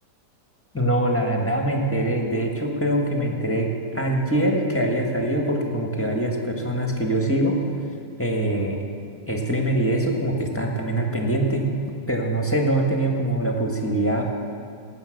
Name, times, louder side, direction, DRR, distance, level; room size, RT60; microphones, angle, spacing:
voice 1, 0.7-7.6 8.2-8.8 9.3-11.6 12.1-14.2, right 1 dB, 10° left, 1 dB, 1.4 m, -23 dB
17.0 x 8.8 x 6.5 m, 2.2 s
omnidirectional pair, 1.9 m